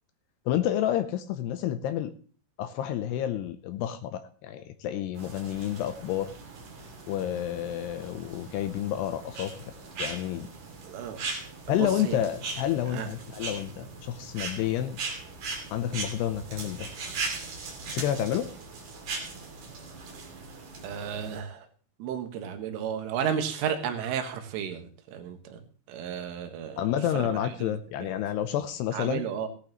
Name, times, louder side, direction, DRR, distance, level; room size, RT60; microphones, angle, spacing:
voice 1, 0.5-2.1 2.6-6.3 7.1-9.6 10.0-10.5 11.7-15.0 15.7-16.9 17.9-18.5 26.8-29.2, left 11 dB, 85° left, 10 dB, 2.4 m, -29 dB
sound 1, 5.1-21.4, right 4 dB, 45° right, 3.6 m, -39 dB
voice 2, 10.9-11.2 11.7-12.2 12.9-13.1 20.8-21.7 22.0-25.6 25.9-26.8 27.1-27.7 28.0-28.1 28.9-29.5, right 8 dB, 85° right, 6 dB, 4.1 m, -33 dB
17.0 x 11.5 x 3.1 m, 0.41 s
omnidirectional pair, 5.6 m